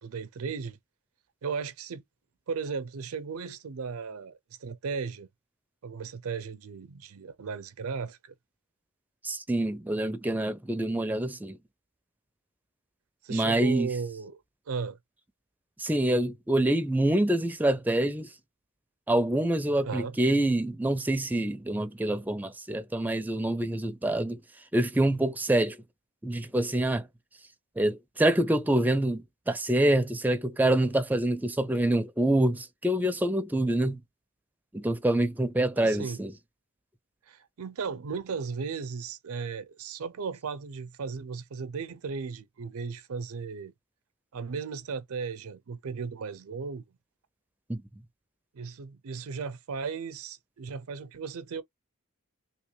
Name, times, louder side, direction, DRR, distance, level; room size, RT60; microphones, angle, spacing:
voice 1, 0.0-0.8 1.4-2.0 2.5-5.3 5.8-8.3 13.2-14.4 14.7-15.0 19.8-20.2 35.8-36.2 37.3-43.7 44.3-46.8 48.5-51.6, right 5 dB, 85° right, 0.5 m, -36 dB
voice 2, 9.2-11.6 13.3-13.9 15.8-18.3 19.1-24.4 24.7-25.8 26.2-27.1 27.8-34.0 34.7-36.3 47.7-47.8, right 1 dB, 10° right, 0.4 m, -26 dB
3.1 x 2.8 x 3.1 m
head